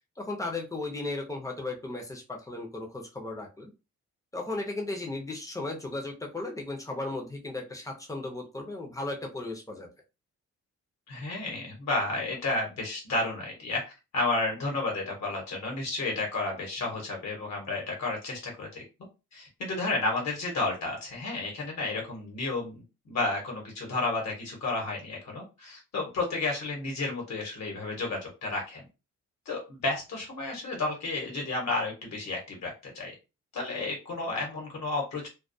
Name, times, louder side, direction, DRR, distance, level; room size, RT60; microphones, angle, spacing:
voice 1, 0.2-3.7 4.3-9.9, left 2 dB, 10° left, 1 dB, 0.5 m, -35 dB
voice 2, 11.1-18.8 19.3-22.7 23.1-28.8 29.5-33.1 33.5-35.3, left 2 dB, 65° left, 0 dB, 1.0 m, -32 dB
2.2 x 2.2 x 2.6 m, 0.28 s
wide cardioid pair, 155°, 29 cm